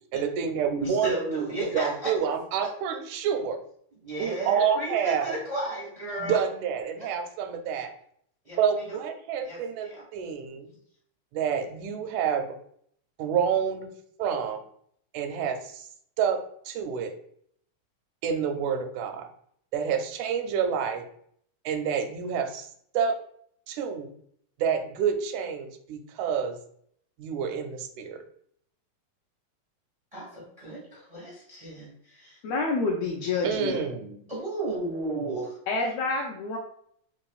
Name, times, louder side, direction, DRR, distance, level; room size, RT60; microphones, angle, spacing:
voice 1, 0.1-3.6 4.2-5.3 6.2-7.9 8.6-10.7 11.3-12.6 13.2-13.9 14.2-14.6 15.1-15.9 16.2-16.4 16.7-17.2 18.2-19.3 19.7-21.1 21.7-22.7 22.9-23.2 23.7-24.1 24.6-26.6 27.2-28.2 33.4-34.2, right 7 dB, 85° right, 6 dB, 1.9 m, -28 dB
voice 2, 0.8-2.1 4.0-6.4 8.4-9.0 9.4-10.0 30.1-32.4 34.3-35.6, right 1 dB, 65° right, -6 dB, 0.3 m, -34 dB
voice 3, 32.4-33.8 35.7-36.6, left 3 dB, 80° left, 0 dB, 1.5 m, -28 dB
4.5 x 3.0 x 2.3 m, 0.66 s
omnidirectional pair, 3.3 m